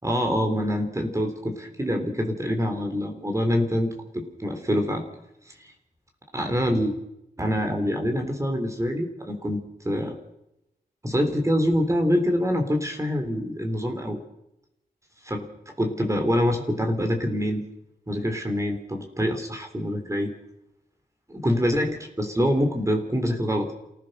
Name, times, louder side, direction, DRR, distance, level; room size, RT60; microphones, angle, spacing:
voice 1, 0.0-5.0 5.5-5.6 6.3-6.9 7.4-10.2 11.0-14.2 15.2-15.5 15.8-17.7 18.1-20.3 21.3-23.7, equal, 20° right, 4 dB, 3.5 m, -25 dB
28.0 x 15.5 x 6.6 m, 0.86 s
wide cardioid pair, 85°, 17 cm